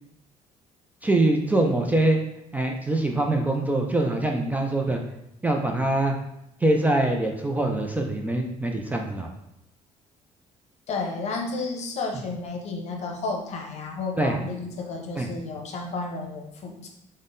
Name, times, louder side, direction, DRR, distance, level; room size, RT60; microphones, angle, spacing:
voice 1, 1.0-2.2 2.5-5.0 5.4-6.1 6.6-9.3 14.2-14.4 15.2-15.3, right 2 dB, 10° right, 2 dB, 0.3 m, -23 dB
voice 2, 10.9-16.9, left 3 dB, 50° left, 2 dB, 0.7 m, -32 dB
3.6 x 2.1 x 3.8 m, 0.82 s
cardioid pair, 110°, 14 cm